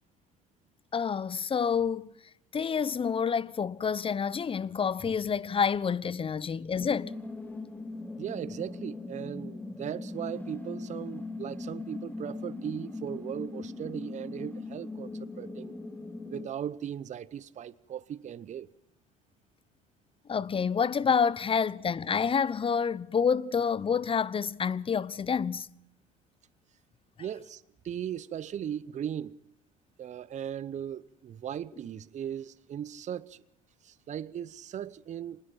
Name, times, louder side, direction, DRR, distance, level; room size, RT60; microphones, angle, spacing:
voice 1, 0.9-2.1 2.5-7.1 20.3-25.7, left 6 dB, 30° left, 1.0 m, -28 dB
sound 1, 6.8-16.5, left 3 dB, 10° left, 2.6 m, -40 dB
voice 2, 8.2-15.1 15.4-15.7 16.3-18.7 27.2-29.4 30.0-33.4 33.8-35.4, right 9 dB, 45° right, 0.9 m, -38 dB
26.5 x 20.0 x 5.9 m
hypercardioid pair, 65°, 18 cm